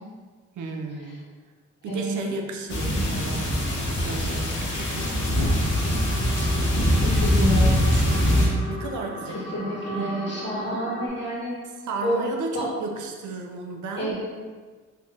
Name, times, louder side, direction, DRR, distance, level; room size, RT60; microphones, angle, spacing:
voice 1, 0.5-1.2 1.8-3.6 4.0-5.8 6.4-6.9 7.9-10.2 11.8-14.1, right 3 dB, 70° right, 2 dB, 0.5 m, -34 dB
voice 2, 1.9-2.3 7.0-7.9 9.5-11.6 12.0-12.2 12.5-12.6 14.0-14.2, equal, 50° left, -7 dB, 1.0 m, -28 dB
sound 1, 2.7-8.5, equal, 70° left, 0.8 m, -22 dB
sound 2, 4.6-11.1, left 1 dB, 25° left, 0.9 m, -38 dB
3.4 x 2.6 x 2.4 m, 1.4 s
supercardioid pair, 40°, 31 cm